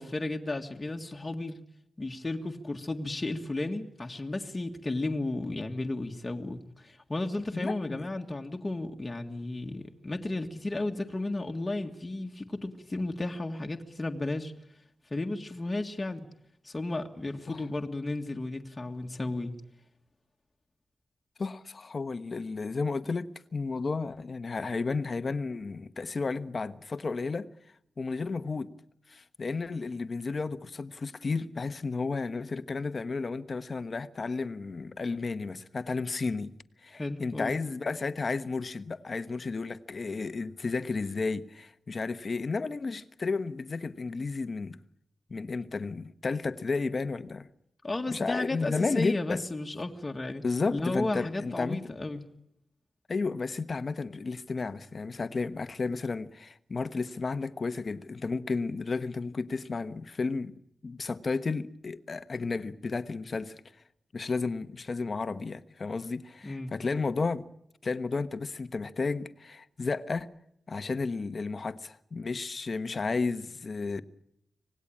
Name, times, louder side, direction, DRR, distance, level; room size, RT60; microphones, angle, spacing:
voice 1, 0.0-1.6 2.0-14.5 15.1-16.3 16.6-19.5 29.8-29.9 36.9-37.5 47.8-50.4 50.7-52.2 66.4-66.7, left 2 dB, 20° left, 1.8 m, -33 dB
voice 2, 7.5-8.1 17.5-17.6 21.4-27.5 28.0-28.7 29.1-36.5 36.8-44.8 45.3-47.5 48.1-49.4 50.4-51.8 53.1-60.5 60.8-63.6 64.1-67.5 67.8-70.3 70.7-74.0, left 4 dB, 40° left, 1.2 m, -32 dB
25.5 x 19.0 x 8.7 m
wide cardioid pair, 135°, 0 cm